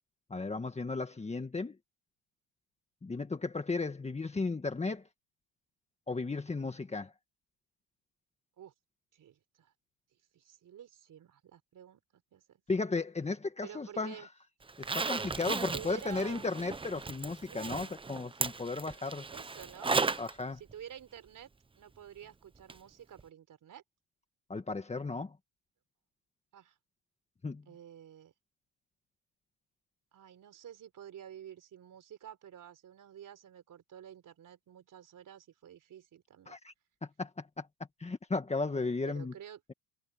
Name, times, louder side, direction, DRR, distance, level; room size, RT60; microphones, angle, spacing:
voice 1, 0.3-1.8 3.0-5.0 6.1-7.1 12.7-14.3 14.8-19.3 19.8-20.6 24.5-25.4 27.4-27.6 36.5-36.7 37.0-37.7 38.0-39.3, left 3 dB, 15° left, 1.7 m, -35 dB
voice 2, 9.1-9.7 10.3-12.6 13.6-14.3 15.6-16.5 17.5-17.9 19.3-20.0 20.5-21.5 21.7-23.8 26.5-26.8 27.7-28.3 30.1-36.6 39.0-39.6, right 10 dB, 40° right, 4.4 m, -50 dB
Zipper (clothing), 14.7-20.3 20.7-20.8 22.7-22.8 23.2-23.3, right 4 dB, 10° right, 0.9 m, -35 dB
cardioid pair, 120°, 46 cm